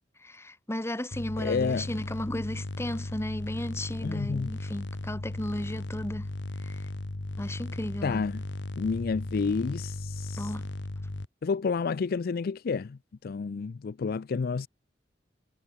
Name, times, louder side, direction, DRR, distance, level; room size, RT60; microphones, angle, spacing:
voice 1, 0.2-6.3 6.6-6.9 7.4-8.2 10.4-10.7, left 1 dB, 15° left, 1.4 m, -35 dB
sound 1, 1.1-11.3, left 1 dB, 75° left, 1.4 m, -36 dB
voice 2, 1.4-1.9 4.0-4.5 8.0-8.4 8.8-10.5 11.4-14.7, left 5 dB, 55° left, 0.4 m, -30 dB
head